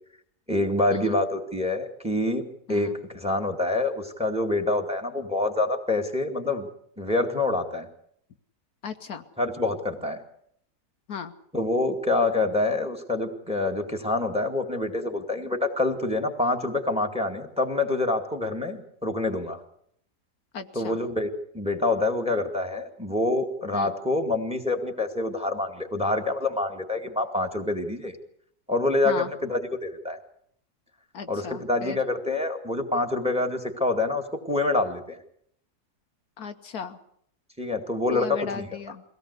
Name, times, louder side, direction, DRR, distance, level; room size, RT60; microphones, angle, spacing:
voice 1, 0.5-2.4 2.7-6.7 7.0-7.9 9.4-10.2 11.5-19.6 20.7-21.3 21.5-28.1 28.7-30.2 31.3-35.2 37.6-38.7, left 2 dB, 5° right, 7 dB, 2.1 m, -26 dB
voice 2, 8.8-9.2 11.1-11.3 20.5-21.0 23.7-23.9 29.0-29.3 31.1-32.0 36.4-37.0 38.1-39.0, left 6 dB, 65° left, 7 dB, 1.5 m, -36 dB
23.5 x 17.5 x 8.2 m, 0.68 s
omnidirectional pair, 1.8 m